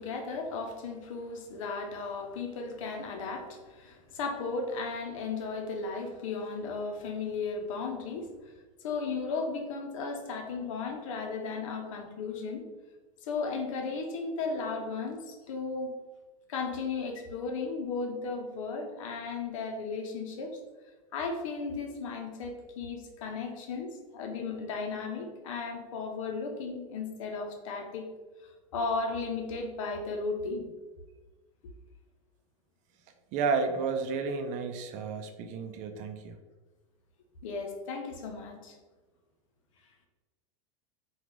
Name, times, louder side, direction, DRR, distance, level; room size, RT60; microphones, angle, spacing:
voice 1, 0.0-8.3 8.8-12.6 13.2-15.9 16.5-20.6 21.1-28.0 28.7-30.7 37.4-38.8, left 4 dB, 80° left, 3 dB, 0.7 m, -35 dB
voice 2, 33.3-36.3, right 5 dB, 50° right, 6 dB, 0.5 m, -31 dB
3.0 x 2.3 x 3.6 m, 1.2 s
supercardioid pair, 115°, 16 cm